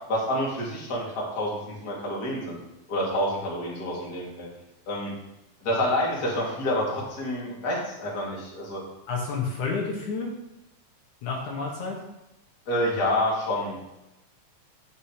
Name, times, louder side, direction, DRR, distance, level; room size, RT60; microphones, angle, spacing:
voice 1, 0.1-2.6 2.9-4.5 4.9-5.1 5.6-8.8 12.7-13.8, left 1 dB, 30° left, -4 dB, 2.7 m, -28 dB
voice 2, 9.1-10.3 11.2-12.0, left 4 dB, 70° left, -1 dB, 2.7 m, -30 dB
8.8 x 6.7 x 5.0 m, 0.95 s
omnidirectional pair, 3.7 m